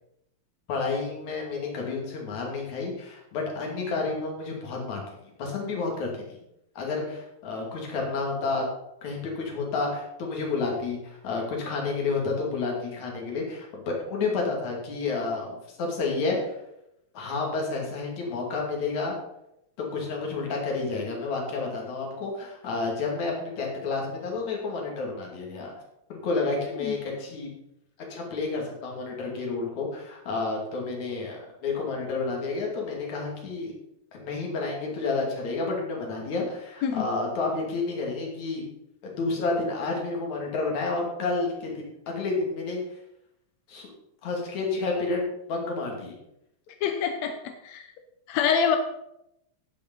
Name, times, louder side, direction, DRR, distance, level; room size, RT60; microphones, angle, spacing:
voice 1, 0.7-6.4 6.8-8.7 9.0-16.5 17.1-19.2 19.8-25.7 26.1-27.5 28.1-33.7 34.1-38.6 39.0-43.0 43.7-43.9 44.2-46.1, left 3 dB, 55° left, -1 dB, 3.7 m, -30 dB
voice 2, 46.8-47.9 48.3-48.8, left 7 dB, 75° left, 6 dB, 1.6 m, -26 dB
15.5 x 5.4 x 5.4 m, 0.82 s
omnidirectional pair, 4.1 m